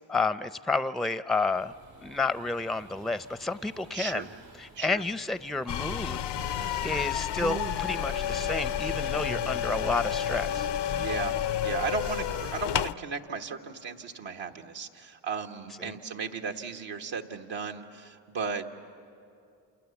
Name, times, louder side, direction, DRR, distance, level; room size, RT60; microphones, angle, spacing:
voice 1, 0.1-1.7 2.0-4.3 4.6-6.2 6.8-10.7 15.8-15.9, left 3 dB, ahead, 13 dB, 0.5 m, -30 dB
Waves surf, 1.5-11.3, right 3 dB, 90° right, 6.1 m, -53 dB
voice 2, 3.9-4.3 4.7-5.0 11.0-18.7, right 5 dB, 70° right, 3 dB, 1.7 m, -35 dB
sound 1, 5.7-12.9, left 11 dB, 65° left, 0.6 m, -30 dB
sound 2, 5.9-12.5, right 7 dB, 35° right, 0.8 m, -43 dB
28.0 x 27.5 x 7.2 m, 2.5 s
cardioid pair, 60°, 46 cm